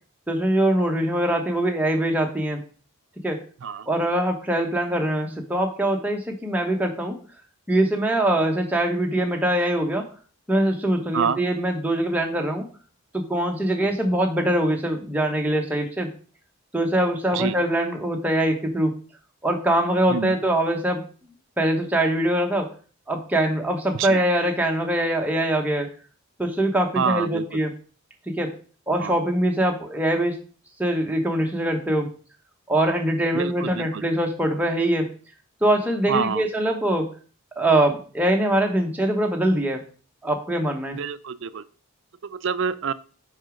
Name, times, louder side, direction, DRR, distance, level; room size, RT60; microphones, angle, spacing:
voice 1, 0.3-2.6 3.2-3.4 3.9-7.2 7.7-10.1 10.5-12.6 13.1-16.1 16.7-18.9 19.4-21.0 21.6-22.7 23.1-25.9 26.4-27.7 28.3-28.5 28.9-30.4 30.8-32.1 32.7-35.1 35.6-37.1 37.6-39.8 40.2-41.0, right 1 dB, 5° right, 2 dB, 1.0 m, -23 dB
voice 2, 26.9-27.4 29.0-29.1 33.3-34.0 36.1-36.5 40.9-41.7 42.2-42.9, right 6 dB, 60° right, 15 dB, 0.4 m, -27 dB
6.4 x 4.9 x 5.1 m, 0.40 s
head